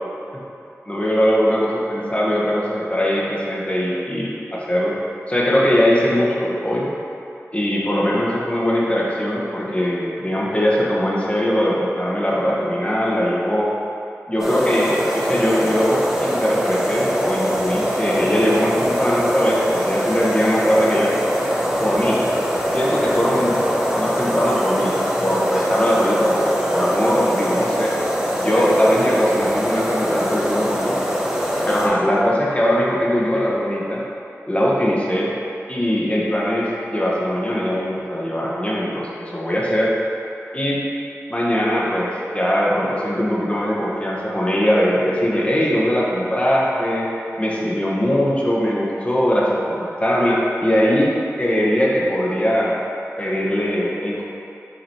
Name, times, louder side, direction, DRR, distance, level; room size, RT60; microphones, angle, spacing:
voice 1, 0.9-4.9 5.3-6.9 7.5-13.7 14.3-21.2 21.8-22.2 22.7-24.9 25.2-27.9 28.4-31.0 31.6-34.0 34.5-35.3 35.7-39.9 40.5-40.8 41.3-47.1 47.4-52.8 53.2-54.2, equal, 20° left, -5 dB, 1.2 m, -20 dB
sound 1, 14.4-31.9, equal, 10° right, 1.1 m, -22 dB
5.9 x 3.9 x 4.4 m, 2.8 s
wide cardioid pair, 55°, 6 cm